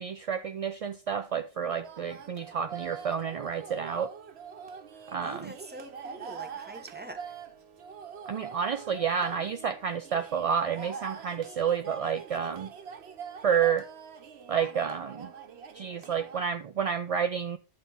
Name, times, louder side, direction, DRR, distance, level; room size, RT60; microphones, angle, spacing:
voice 1, 0.0-4.1 5.1-5.5 8.3-12.7 13.4-13.9 14.5-15.3 15.7-17.6, right 7 dB, 50° right, 0.4 m, -30 dB
sound 1, 1.8-16.4, right 7 dB, 85° right, 1.2 m, -44 dB
voice 2, 4.9-7.4, right 1 dB, 10° right, 1.1 m, -45 dB
11.5 x 3.8 x 5.5 m
omnidirectional pair, 1.0 m